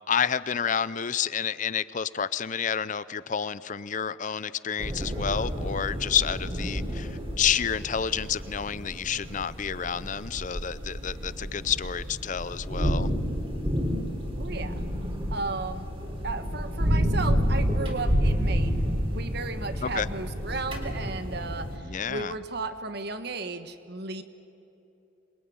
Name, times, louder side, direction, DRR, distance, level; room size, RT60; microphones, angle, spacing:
voice 1, 0.1-13.1 19.8-20.1 21.8-22.4, left 8 dB, 40° left, 16 dB, 0.5 m, -29 dB
sound 1, 4.8-21.8, equal, 25° right, 3.6 m, -30 dB
voice 2, 14.4-14.8 15.3-15.9 16.2-24.2, right 3 dB, 55° right, 10 dB, 1.5 m, -35 dB
27.0 x 22.0 x 9.5 m, 3.0 s
head